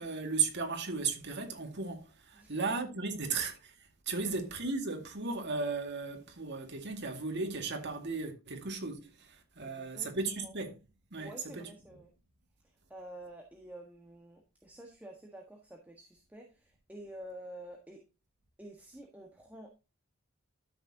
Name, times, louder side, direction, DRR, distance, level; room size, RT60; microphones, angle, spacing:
voice 1, 0.0-10.7 11.1-11.7, right 4 dB, 55° right, 2.2 m, -36 dB
voice 2, 9.6-10.5 11.2-12.1 12.9-18.0 18.6-19.7, right 1 dB, 10° right, 1.6 m, -49 dB
13.0 x 6.7 x 2.9 m
head